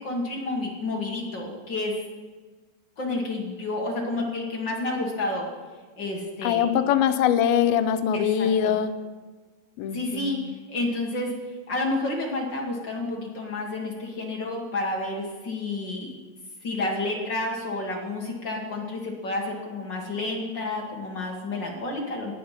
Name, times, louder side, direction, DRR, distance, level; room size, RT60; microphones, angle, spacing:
voice 1, 0.0-2.0 3.0-5.5 6.0-6.7 8.1-8.8 9.9-11.3 11.7-16.1 16.6-22.3, left 2 dB, 40° left, 0 dB, 1.8 m, -30 dB
voice 2, 6.4-8.9 9.8-10.5, left 9 dB, 90° left, 10 dB, 2.6 m, -23 dB
17.5 x 11.0 x 5.8 m, 1.4 s
omnidirectional pair, 4.2 m